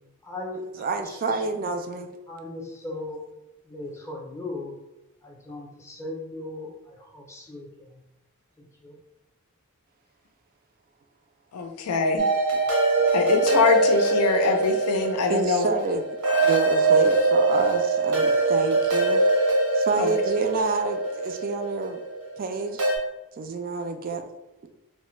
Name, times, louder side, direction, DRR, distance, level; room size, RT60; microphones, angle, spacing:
voice 1, 0.2-1.4 2.3-3.2 3.6-4.7 5.2-8.0 8.6-9.0, left 2 dB, 10° left, -2 dB, 0.5 m, -38 dB
voice 2, 0.8-2.1 12.5-12.6 15.3-16.0 16.4-19.2 19.7-22.0 22.4-22.9 23.4-24.3, right 3 dB, 40° right, 6 dB, 0.3 m, -28 dB
voice 3, 11.5-12.3 13.1-15.6 20.0-20.1, left 4 dB, 85° left, 5 dB, 0.5 m, -23 dB
sound 1, 12.2-23.0, right 3 dB, 75° right, 0.8 m, -23 dB
3.1 x 2.0 x 3.0 m, 0.95 s
head